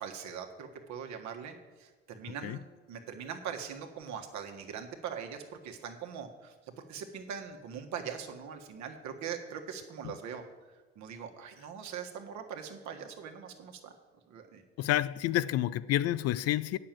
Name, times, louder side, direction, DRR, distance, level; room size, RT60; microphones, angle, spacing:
voice 1, 0.0-2.6 2.9-6.5 6.9-10.4 10.9-13.9 14.3-14.6, right 7 dB, 60° right, 1.5 m, -41 dB
voice 2, 14.8-16.8, left 13 dB, 50° left, 0.4 m, -29 dB
8.8 x 6.7 x 7.5 m
hypercardioid pair, 75°, 32 cm